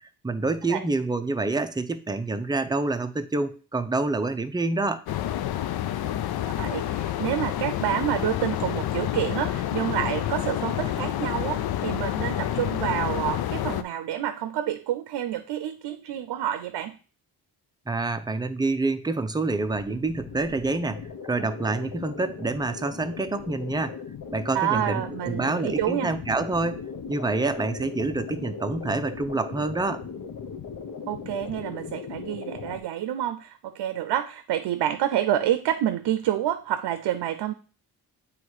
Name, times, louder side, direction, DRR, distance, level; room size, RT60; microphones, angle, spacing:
voice 1, 0.0-5.0 17.9-24.0 24.3-26.8 27.1-30.0, right 3 dB, 10° right, 8 dB, 0.6 m, -27 dB
sound 1, 5.1-13.8, left 12 dB, 70° left, 0.5 m, -28 dB
voice 2, 6.6-17.0 24.5-26.1 31.1-37.5, right 11 dB, 85° right, 10 dB, 0.6 m, -28 dB
sound 2, 19.6-32.8, left 6 dB, 55° left, 1.0 m, -38 dB
8.0 x 3.2 x 4.7 m, 0.38 s
cardioid pair, 90°, 39 cm